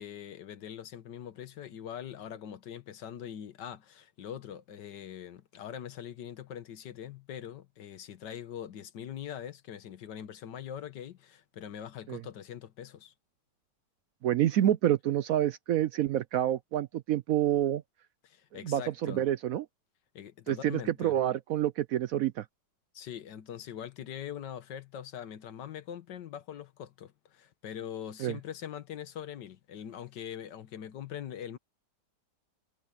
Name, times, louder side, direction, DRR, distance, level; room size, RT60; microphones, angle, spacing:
voice 1, 0.0-13.1 18.2-19.3 20.2-21.2 22.9-31.6, left 9 dB, 80° left, 1.7 m, -42 dB
voice 2, 14.2-17.8 18.6-19.7 20.5-22.4 28.2-28.4, right 12 dB, 70° right, 0.9 m, -28 dB
omnidirectional pair, 1.8 m